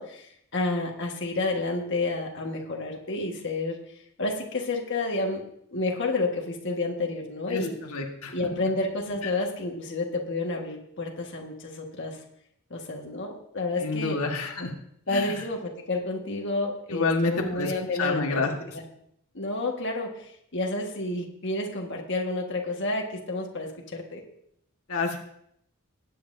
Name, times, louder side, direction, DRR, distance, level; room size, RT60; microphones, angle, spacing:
voice 1, 0.0-3.8 4.2-5.4 5.7-7.8 8.3-12.2 12.7-14.2 15.1-18.4 18.7-18.8 19.3-24.2, left 2 dB, 55° left, 1 dB, 1.5 m, -30 dB
voice 2, 7.9-8.3 13.8-14.7 15.1-15.3 16.9-17.7 18.0-18.5 24.9-25.2, left 3 dB, 85° left, 1 dB, 1.4 m, -27 dB
20.0 x 8.7 x 2.6 m, 0.72 s
head